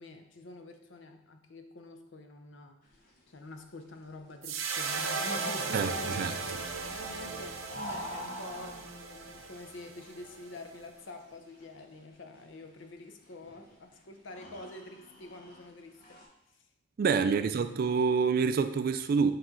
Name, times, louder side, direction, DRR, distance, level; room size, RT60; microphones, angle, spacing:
voice 1, 0.0-2.8 3.3-6.3 6.9-7.6 7.8-16.2 16.6-16.7 17.2-17.6, left 2 dB, 65° left, 6 dB, 0.7 m, -47 dB
sound 1, 2.8-16.3, equal, 45° left, 1.3 m, -48 dB
sound 2, 4.4-10.8, right 4 dB, 80° right, 0.7 m, -37 dB
voice 2, 5.7-6.3 17.0-19.3, right 5 dB, 45° right, 10 dB, 0.3 m, -27 dB
8.7 x 3.2 x 3.8 m, 0.82 s
head